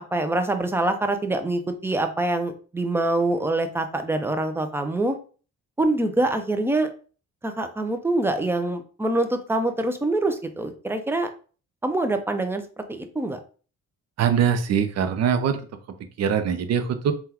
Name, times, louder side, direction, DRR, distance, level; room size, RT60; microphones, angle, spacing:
voice 1, 0.1-5.2 5.8-6.9 7.4-11.3 11.8-12.6 12.9-13.4, right 2 dB, 10° right, 7 dB, 0.5 m, -25 dB
voice 2, 14.2-15.6 16.2-17.1, right 7 dB, 60° right, 9 dB, 0.6 m, -22 dB
3.6 x 2.3 x 2.9 m, 0.38 s
cardioid pair, 90°, 30 cm